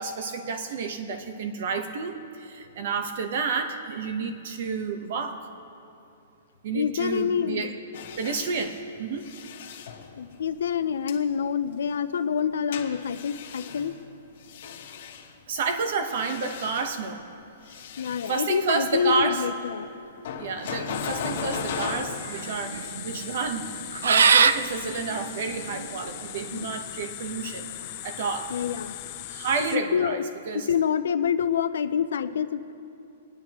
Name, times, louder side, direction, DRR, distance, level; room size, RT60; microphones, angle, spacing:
voice 1, 0.0-5.5 6.6-7.7 8.2-9.3 15.5-17.3 17.7-17.8 18.3-19.4 20.3-27.7 28.0-28.5 29.3-30.2 30.5-30.7, right 5 dB, 55° right, 7 dB, 1.1 m, -30 dB
voice 2, 6.7-7.8 10.1-13.9 18.0-20.1 26.5-26.7 28.5-29.0 29.7-30.2 30.5-32.7, left 7 dB, 80° left, 10 dB, 0.6 m, -27 dB
sound 1, 7.9-10.5 11.1-11.2 12.7-15.3 15.9-17.2 17.6-18.6 20.2-22.4, left 7 dB, 55° left, 1.2 m, -37 dB
sound 2, 20.7-26.5, right 6 dB, 90° right, 0.4 m, -25 dB
sound 3, 20.9-29.8, left 15 dB, 35° left, 0.5 m, -39 dB
24.5 x 9.6 x 3.1 m, 2.7 s
hypercardioid pair, 160°, 0 cm